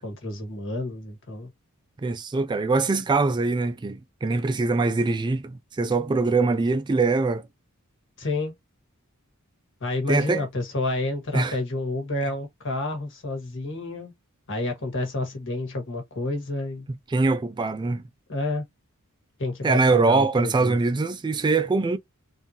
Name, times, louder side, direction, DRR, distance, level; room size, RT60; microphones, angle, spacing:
voice 1, 0.0-1.5 8.2-8.5 9.8-14.1 14.5-16.8 18.3-18.6 19.4-20.8, left 2 dB, 60° left, 1.4 m, -29 dB
voice 2, 2.0-7.5 10.1-10.5 11.3-11.6 16.9-18.0 19.6-22.0, right 3 dB, 20° right, 0.3 m, -23 dB
3.6 x 2.6 x 2.8 m
head